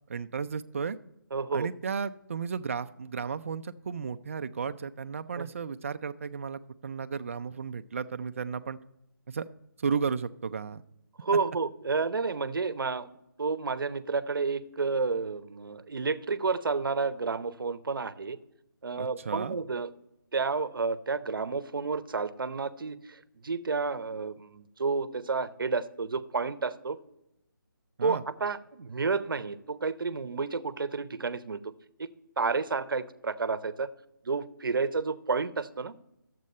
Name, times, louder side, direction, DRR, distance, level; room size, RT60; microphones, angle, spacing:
voice 1, 0.1-1.0 1.5-8.8 9.3-9.4 9.8-10.8 19.0-19.6 28.0-28.2, right 6 dB, 40° right, 11 dB, 0.5 m, -34 dB
voice 2, 1.3-1.7 5.4-5.5 11.2-13.1 13.4-18.4 18.8-19.9 20.3-27.0 28.0-31.6 32.0-32.1 32.4-33.9 34.2-35.9, right 4 dB, 75° right, 14 dB, 0.7 m, -30 dB
10.5 x 7.5 x 4.2 m, 0.84 s
hypercardioid pair, 165°, 11 cm